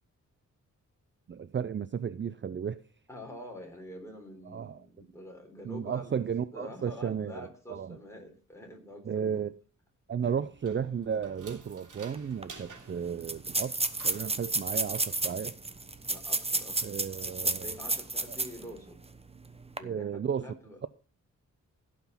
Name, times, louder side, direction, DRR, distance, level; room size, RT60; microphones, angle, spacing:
voice 1, 1.3-2.8 4.5-4.8 5.6-7.4 7.7-8.0 9.1-9.5 10.1-13.8 14.0-15.5 16.8-17.7 19.8-20.5, right 7 dB, 40° right, 0.5 m, -33 dB
voice 2, 3.1-9.4 10.2-10.4 14.3-14.5 16.1-17.0 17.3-19.0 19.8-20.8, equal, 10° left, 4.1 m, -46 dB
sound 1, 10.4-16.1, right 4 dB, 80° right, 3.1 m, -52 dB
sound 2, 12.1-12.2 12.4-12.5 13.2-18.6 19.0-19.1 19.6-19.8, right 3 dB, 20° right, 1.0 m, -31 dB
16.0 x 5.9 x 5.8 m
wide cardioid pair, 95°, 31 cm